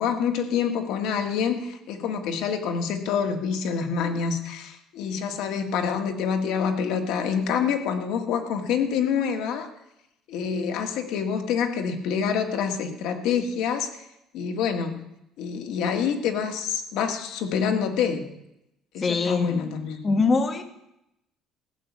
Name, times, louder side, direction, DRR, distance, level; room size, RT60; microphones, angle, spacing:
voice 1, 0.0-9.7 10.3-14.0 14.3-15.0 15.4-18.2 18.9-20.0, left 7 dB, 65° left, 6 dB, 1.7 m, -27 dB
voice 2, 19.0-19.7 20.0-20.6, left 4 dB, 20° left, 7 dB, 1.2 m, -23 dB
15.0 x 6.6 x 8.4 m, 0.85 s
cardioid pair, 175°, 0 cm